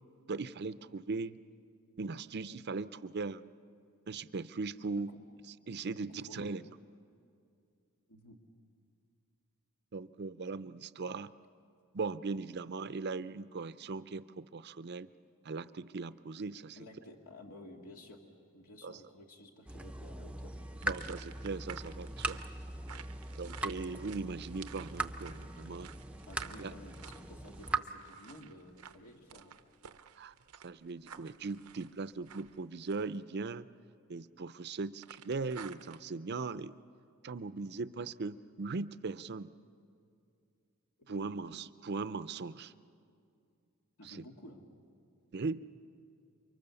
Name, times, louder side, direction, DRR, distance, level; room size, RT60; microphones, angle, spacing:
voice 1, 0.3-1.4 2.0-3.4 4.1-5.1 5.7-6.6 9.9-11.3 11.9-15.1 15.4-16.8 18.8-19.0 20.8-22.4 23.4-25.9 26.6-26.7 30.2-30.3 30.6-33.7 34.1-36.8 37.2-39.5 41.1-42.7 44.0-44.2 45.3-45.6, right 4 dB, 50° right, 14 dB, 0.6 m, -39 dB
voice 2, 6.1-6.5 8.1-8.4 16.8-18.2 18.5-20.6 26.3-29.6 41.1-41.4 44.0-44.6, left 1 dB, 80° left, 1 dB, 2.1 m, -53 dB
sound 1, 19.7-27.8, right 2 dB, 5° right, 0.6 m, -40 dB
sound 2, 20.8-33.2 35.0-36.0, right 8 dB, 90° right, 0.8 m, -53 dB
29.5 x 24.0 x 7.0 m, 2.4 s
head